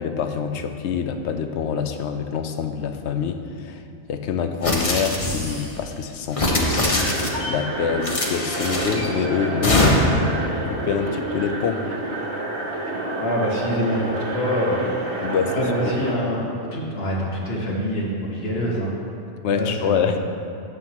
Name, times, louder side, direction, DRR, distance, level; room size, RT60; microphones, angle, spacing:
voice 1, 0.0-3.8 4.1-10.1 10.7-11.9 15.2-15.9 19.4-20.2, left 6 dB, 80° left, 7 dB, 0.9 m, -26 dB
sound 1, 4.6-5.7 6.3-7.5 8.0-9.1 9.6-10.3, left 2 dB, 30° left, 0.9 m, -22 dB
sound 2, 6.5-16.1, right 1 dB, 65° right, 1.2 m, -29 dB
voice 2, 13.2-14.9 15.5-16.4 16.7-18.9 19.5-20.1, equal, 60° left, -3 dB, 1.5 m, -25 dB
12.0 x 7.7 x 2.9 m, 2.5 s
omnidirectional pair, 1.2 m